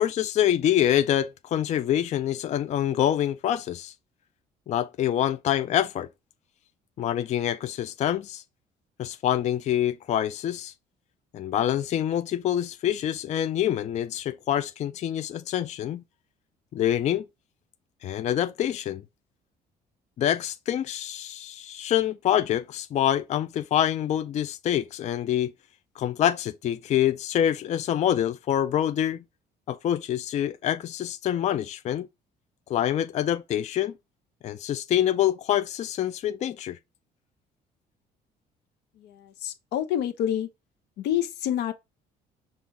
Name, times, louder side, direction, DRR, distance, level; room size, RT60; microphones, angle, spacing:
voice 1, 0.0-3.9 4.7-6.1 7.0-8.4 9.0-10.7 11.3-16.0 16.7-17.3 18.0-19.0 20.2-25.5 26.0-29.2 29.7-32.1 32.7-33.9 34.4-36.8, left 11 dB, 45° left, 0.4 m, -26 dB
voice 2, 39.0-40.5 41.0-41.7, left 10 dB, 85° left, 0.8 m, -28 dB
5.5 x 2.4 x 3.8 m
cardioid pair, 110°, 17 cm